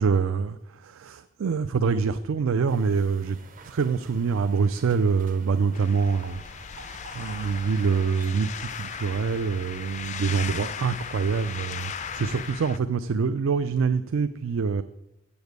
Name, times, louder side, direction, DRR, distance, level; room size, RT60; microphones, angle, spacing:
voice 1, 0.0-3.4 3.7-6.7 7.1-14.8, right 5 dB, 70° right, 11 dB, 0.4 m, -25 dB
sound 1, 2.7-12.5, right 3 dB, 40° right, 0.7 m, -48 dB
sound 2, 5.7-12.8, left 8 dB, 35° left, 0.3 m, -37 dB
8.0 x 7.0 x 8.0 m, 0.91 s
head